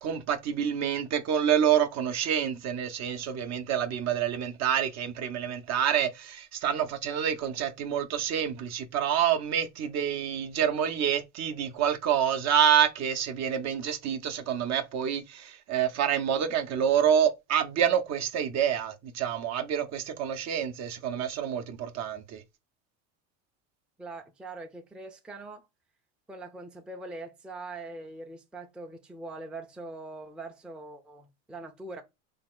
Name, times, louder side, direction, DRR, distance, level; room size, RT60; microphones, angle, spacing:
voice 1, 0.0-22.4, right 9 dB, 45° right, 0.7 m, -27 dB
voice 2, 24.0-25.7 26.3-32.0, right 2 dB, 5° right, 0.5 m, -42 dB
3.5 x 2.3 x 3.6 m
supercardioid pair, 100°, 37 cm